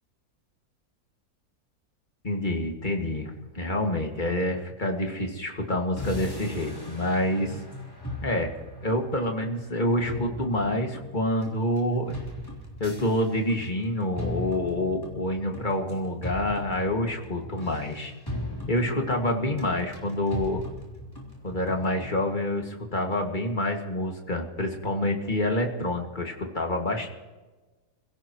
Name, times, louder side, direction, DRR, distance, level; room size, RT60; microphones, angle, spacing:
voice 1, 2.2-7.6 8.2-8.5 8.8-12.2 12.8-18.1 18.7-20.6 21.4-27.1, left 1 dB, 30° left, 2 dB, 2.2 m, -27 dB
sound 1, 6.0-22.3, left 1 dB, 15° left, 3.1 m, -38 dB
28.0 x 16.5 x 3.1 m, 1.2 s
omnidirectional pair, 1.7 m